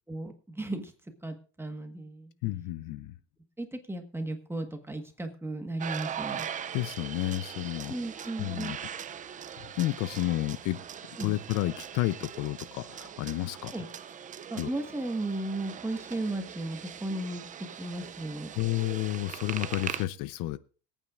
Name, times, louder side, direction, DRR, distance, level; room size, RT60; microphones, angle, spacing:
voice 1, 0.1-0.9 1.2-2.3 3.6-6.5 7.9-8.7 11.2-11.4 13.7-13.8 14.5-18.5, right 2 dB, 5° right, 6 dB, 1.4 m, -35 dB
voice 2, 2.4-3.1 6.7-7.9 8.4-8.8 9.8-10.8 11.2-13.8 14.6-14.7 18.5-20.6, left 16 dB, 65° left, 16 dB, 0.7 m, -31 dB
sound 1, 5.8-20.0, right 8 dB, 20° right, 0.4 m, -41 dB
24.0 x 9.0 x 2.5 m, 0.36 s
cardioid pair, 130°, 35 cm